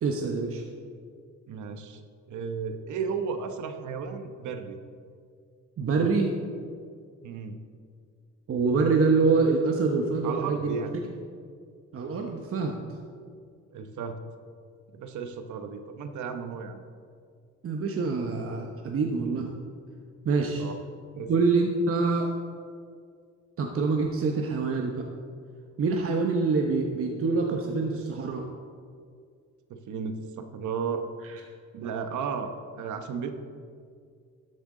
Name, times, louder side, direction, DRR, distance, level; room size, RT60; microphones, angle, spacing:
voice 1, 0.0-0.6 5.8-6.3 8.5-10.8 11.9-12.8 17.6-19.5 20.2-20.6 21.3-22.3 23.6-25.0 25.8-28.4, right 4 dB, 50° right, 2 dB, 0.9 m, -25 dB
voice 2, 1.5-2.0 2.3-4.8 7.2-7.6 10.2-11.0 13.7-14.2 14.9-16.8 20.6-20.8 21.1-21.3 29.7-31.0 31.7-33.3, right 6 dB, 75° right, 7 dB, 1.0 m, -34 dB
13.0 x 7.7 x 3.8 m, 2.2 s
cardioid pair, 90°, 30 cm